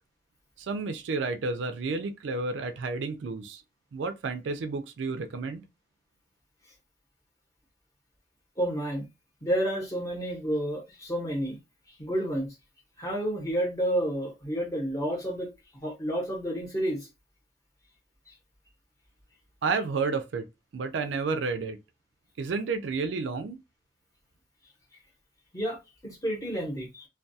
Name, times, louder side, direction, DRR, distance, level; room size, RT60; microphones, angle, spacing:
voice 1, 0.6-3.6 3.9-5.7 19.6-20.5 20.7-21.8 22.4-23.6, right 4 dB, 70° right, 0.4 m, -31 dB
voice 2, 8.6-9.1 9.4-11.6 12.0-12.5 13.0-15.5 15.8-17.1 25.5-27.1, right 1 dB, 20° left, 0.9 m, -30 dB
2.3 x 2.2 x 2.6 m
head